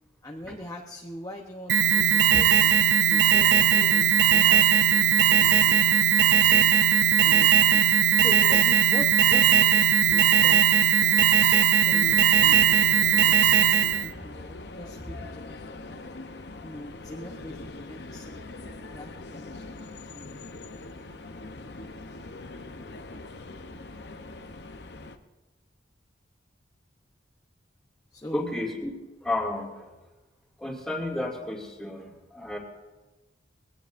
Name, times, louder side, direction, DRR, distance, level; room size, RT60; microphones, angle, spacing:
voice 1, 0.2-2.7 3.1-6.1 6.4-6.7 7.2-7.8 8.2-11.2 11.9-13.3 13.7-16.0 16.6-18.4 18.9-20.4 28.1-28.5, left 1 dB, 20° left, 0 dB, 0.9 m, -41 dB
Alarm, 1.7-14.1, right 9 dB, 65° right, 0.5 m, -19 dB
sound 1, 12.0-25.2, left 2 dB, 60° left, 0.8 m, -42 dB
voice 2, 28.3-28.9 29.2-29.9 30.6-32.6, left 1 dB, 5° left, -2 dB, 2.4 m, -32 dB
21.5 x 17.0 x 2.6 m, 1.1 s
head